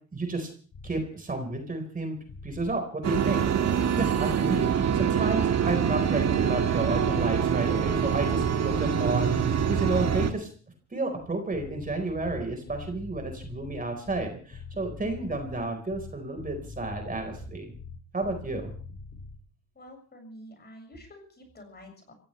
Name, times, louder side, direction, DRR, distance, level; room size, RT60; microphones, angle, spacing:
voice 1, 0.1-0.5 0.8-2.2 2.4-10.5 10.9-17.7 18.1-18.7, right 2 dB, 30° right, 5 dB, 4.4 m, -31 dB
sound 1, 0.7-0.9 2.3-2.7 4.1-4.6 6.0-6.5 7.8-8.3 9.7-10.2 11.5-19.4, left 4 dB, 60° left, 6.4 m, -43 dB
sound 2, 3.0-10.3, right 8 dB, 60° right, 1.9 m, -25 dB
voice 2, 19.8-22.1, equal, 35° left, 3 dB, 6.8 m, -48 dB
26.5 x 16.0 x 3.3 m, 0.41 s
cardioid pair, 90°, 30 cm